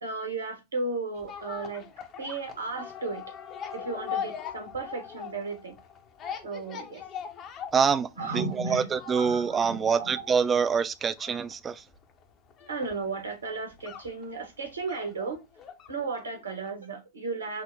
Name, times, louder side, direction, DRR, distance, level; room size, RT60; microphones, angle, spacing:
voice 1, 0.0-1.9 2.2-3.3 3.7-5.7 6.4-7.0 8.2-10.3 12.7-15.4 15.9-17.6, right 3 dB, 75° right, 1.1 m, -34 dB
sound 1, 1.1-16.3 16.7-16.8, left 8 dB, 30° left, 0.7 m, -41 dB
voice 2, 7.7-11.8, right 6 dB, 20° right, 0.3 m, -26 dB
5.7 x 2.0 x 2.8 m
figure-of-eight pair, 90°, 0 cm